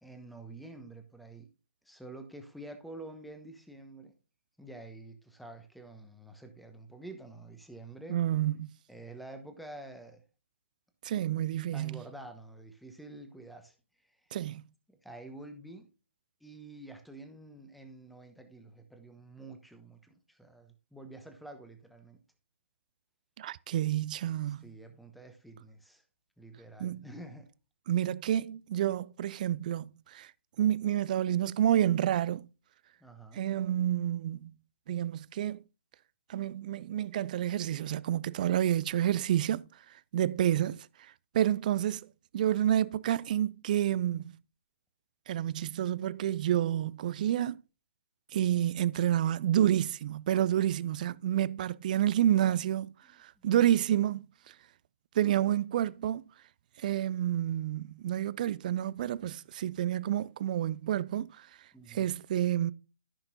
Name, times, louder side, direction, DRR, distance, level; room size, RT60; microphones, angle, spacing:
voice 1, 0.0-1.5 1.8-4.1 4.6-8.2 8.9-10.2 11.4-13.8 14.0-14.2 14.9-15.9 16.4-22.2 24.5-26.0 26.4-27.5 33.0-33.4 40.5-40.8 53.1-53.4 61.7-62.1, right 2 dB, ahead, 1.0 m, -48 dB
voice 2, 8.1-8.7 11.0-12.0 14.3-14.6 23.4-24.7 26.8-27.1 27.9-30.3 30.6-32.5 33.3-34.5 34.9-35.6 36.3-39.7 40.1-40.8 41.3-42.1 42.3-44.3 45.3-47.6 48.3-52.9 53.2-54.2 55.2-56.2 56.8-61.5 61.9-62.7, right 11 dB, 40° right, 0.3 m, -29 dB
14.0 x 5.8 x 2.7 m
figure-of-eight pair, 135°, 7 cm